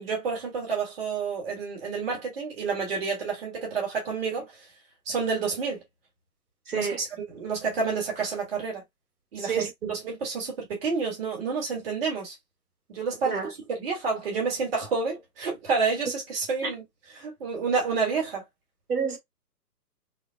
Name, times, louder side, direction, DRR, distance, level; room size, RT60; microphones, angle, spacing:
voice 1, 0.0-4.6 5.1-5.8 6.7-8.8 9.3-12.3 12.9-16.8 17.1-18.5, right 5 dB, 35° right, 2.0 m, -29 dB
voice 2, 6.7-7.0 9.4-9.9 13.3-13.5 16.6-16.7 18.9-19.2, right 6 dB, 65° right, 1.9 m, -29 dB
5.6 x 2.4 x 2.3 m
hypercardioid pair, 165°, 48 cm